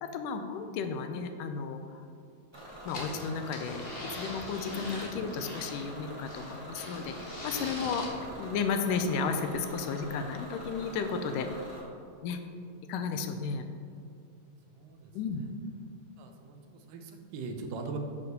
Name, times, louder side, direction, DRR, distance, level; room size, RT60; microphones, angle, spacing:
voice 1, 0.0-2.0 2.8-11.5 12.2-12.4 12.9-13.6 15.1-15.4, left 5 dB, 80° left, 7 dB, 2.1 m, -33 dB
Bus / Engine, 2.5-11.8, equal, 10° right, 1.4 m, -45 dB
sound 1, 2.9-5.9 6.3-8.1, left 1 dB, 45° left, 0.7 m, -41 dB
voice 2, 14.7-15.1 16.2-18.0, right 4 dB, 85° right, 4 dB, 2.6 m, -41 dB
8.4 x 4.9 x 6.6 m, 2.5 s
omnidirectional pair, 3.9 m